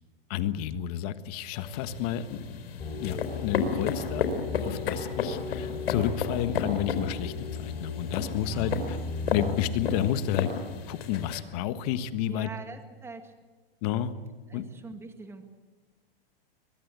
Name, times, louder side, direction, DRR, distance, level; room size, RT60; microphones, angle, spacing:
voice 1, 0.3-2.5 3.0-4.3 4.6-9.0 9.3-10.5 10.9-12.5 13.8-14.1 14.5-14.6, left 11 dB, 40° left, 12 dB, 1.4 m, -31 dB
sound 1, 1.5-11.4, left 5 dB, 90° left, 4.3 m, -33 dB
sound 2, 2.8-10.1, left 4 dB, 20° left, 3.5 m, -36 dB
voice 2, 8.4-8.8 12.3-13.3 14.5-15.5, right 3 dB, 10° right, 7 dB, 1.8 m, -44 dB
23.5 x 21.0 x 8.2 m, 1.2 s
supercardioid pair, 155°, 29 cm